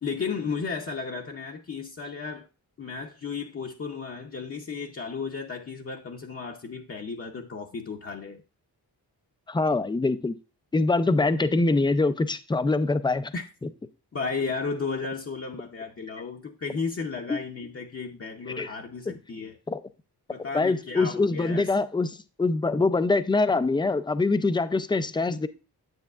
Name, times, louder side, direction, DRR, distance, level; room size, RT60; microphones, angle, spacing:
voice 1, 0.0-2.5 2.8-8.4 13.3-13.4 14.1-19.6 20.3-21.7, left 5 dB, 35° left, 0.8 m, -34 dB
voice 2, 9.5-10.3 10.7-13.3 17.3-17.4 18.6-18.7 19.1-19.2 19.7-19.8 20.5-25.5, left 3 dB, 10° left, 0.4 m, -24 dB
9.1 x 8.4 x 2.4 m
wide cardioid pair, 130°, 40 cm